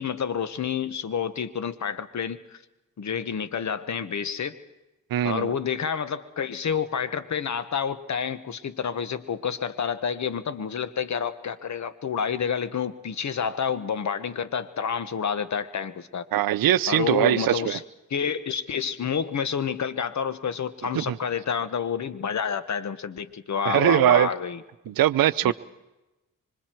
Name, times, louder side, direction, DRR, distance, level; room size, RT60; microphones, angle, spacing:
voice 1, 0.0-2.6 3.0-4.6 5.2-16.3 16.9-17.8 18.1-24.6 25.4-25.5, left 7 dB, 55° left, 13 dB, 1.3 m, -29 dB
voice 2, 5.1-5.5 16.3-17.8 21.0-21.2 23.7-24.3 24.9-25.5, right 12 dB, 85° right, 15 dB, 0.7 m, -21 dB
25.5 x 25.0 x 4.6 m, 1.0 s
cardioid pair, 80°, 34 cm